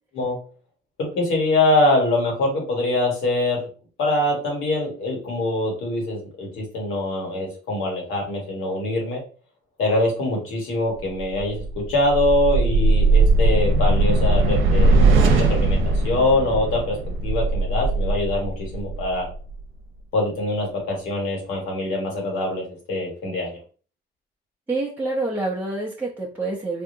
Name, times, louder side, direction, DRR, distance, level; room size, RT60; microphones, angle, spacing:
voice 1, 1.0-3.7 4.0-9.2 9.8-15.8 16.0-17.0 17.2-19.3 20.1-23.6, left 2 dB, 85° left, -1 dB, 1.5 m, -23 dB
sound 1, 11.2-19.6, right 2 dB, 80° right, 0.7 m, -19 dB
voice 2, 24.7-26.8, right 2 dB, 10° right, -3 dB, 0.7 m, -27 dB
3.5 x 2.6 x 2.7 m, 0.39 s
cardioid pair, 90°, 20 cm